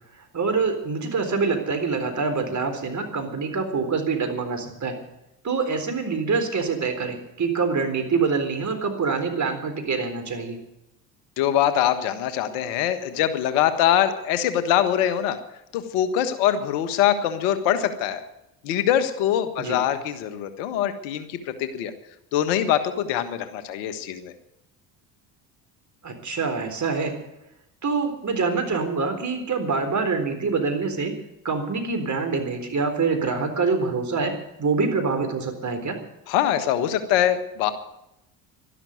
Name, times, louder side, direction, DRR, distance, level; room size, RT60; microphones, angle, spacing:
voice 1, 0.3-5.0 5.4-10.6 19.6-19.8 26.0-27.1 27.8-31.1 31.4-36.0, right 4 dB, 35° right, 5 dB, 4.0 m, -25 dB
voice 2, 11.4-15.4 15.7-18.2 18.6-21.9 22.3-24.3 36.3-37.7, left 10 dB, 75° left, 10 dB, 1.6 m, -23 dB
12.0 x 12.0 x 9.5 m, 0.88 s
hypercardioid pair, 65°, 49 cm